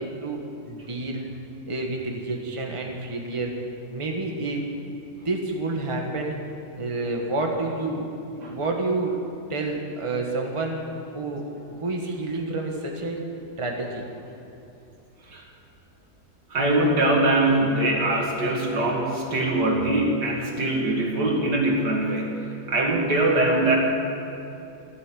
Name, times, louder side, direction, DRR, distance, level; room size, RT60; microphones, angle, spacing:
voice 1, 0.0-1.4 1.7-3.5 3.9-5.0 5.2-6.4 6.8-9.2 9.5-10.8 11.1-13.2 13.6-14.0, right 2 dB, 20° right, 1 dB, 1.6 m, -29 dB
voice 2, 16.5-23.8, right 2 dB, 80° right, -1 dB, 2.8 m, -22 dB
14.0 x 13.0 x 7.6 m, 2.8 s
omnidirectional pair, 1.8 m